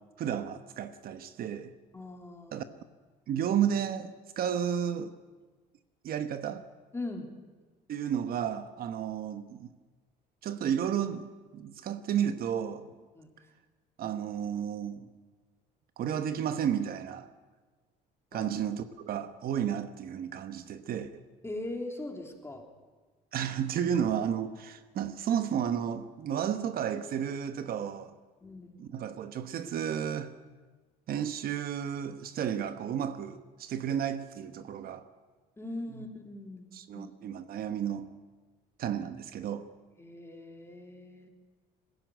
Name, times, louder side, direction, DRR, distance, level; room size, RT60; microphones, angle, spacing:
voice 1, 0.2-1.7 2.5-2.6 3.3-5.1 6.0-6.7 7.9-9.7 10.4-12.9 14.0-15.1 16.0-17.3 18.3-21.2 23.3-28.1 28.8-30.3 31.1-35.1 36.0-36.1 36.7-38.1 38.8-39.7, right 9 dB, 60° right, 1.1 m, -32 dB
voice 2, 1.9-2.7 6.9-7.3 13.1-13.3 18.3-18.5 21.4-22.6 28.4-28.8 35.6-36.7 36.9-37.4 40.0-41.3, left 2 dB, 15° left, 3.3 m, -40 dB
20.5 x 15.5 x 9.2 m
cardioid pair, 110°, 17 cm